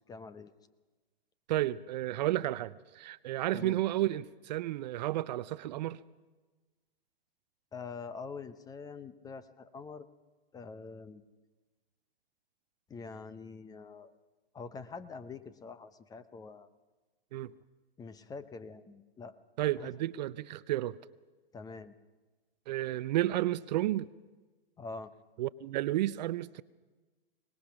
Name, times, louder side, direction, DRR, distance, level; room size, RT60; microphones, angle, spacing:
voice 1, 0.1-0.5 3.5-3.8 7.7-10.1 10.5-11.2 12.9-14.1 14.5-16.7 18.0-19.4 19.8-19.9 21.5-21.9 24.8-25.1, left 4 dB, 10° left, 13 dB, 0.7 m, -45 dB
voice 2, 1.5-6.0 17.3-17.5 19.6-21.0 22.7-24.1 25.4-26.6, right 14 dB, 45° right, 17 dB, 0.6 m, -32 dB
23.0 x 19.5 x 5.9 m, 1.3 s
hypercardioid pair, 120°, 30 cm